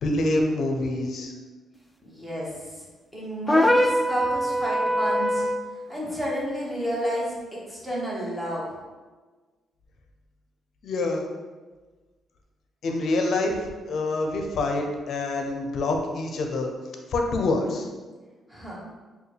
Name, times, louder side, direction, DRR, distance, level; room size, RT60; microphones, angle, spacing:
voice 1, 0.0-1.3 10.8-11.2 12.8-16.7 17.1-17.9, left 2 dB, 60° left, 3 dB, 0.6 m, -26 dB
voice 2, 2.0-2.9 3.1-5.4 5.9-8.7 18.5-18.8, equal, 5° right, -6 dB, 1.4 m, -31 dB
sound 1, 3.5-5.7, equal, 15° left, 0.3 m, -22 dB
4.7 x 2.3 x 3.3 m, 1.3 s
cardioid pair, 90°, 0 cm